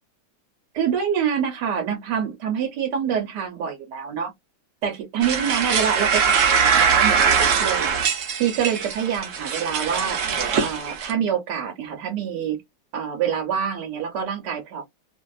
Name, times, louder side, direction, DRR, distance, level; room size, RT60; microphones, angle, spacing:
voice 1, 0.7-4.3 4.8-8.0 8.4-10.2 10.6-12.6 12.9-14.8, right 8 dB, 75° right, 1.3 m, -26 dB
sound 1, 5.2-11.1, right 6 dB, 60° right, 0.9 m, -21 dB
2.8 x 2.6 x 2.3 m
omnidirectional pair, 1.9 m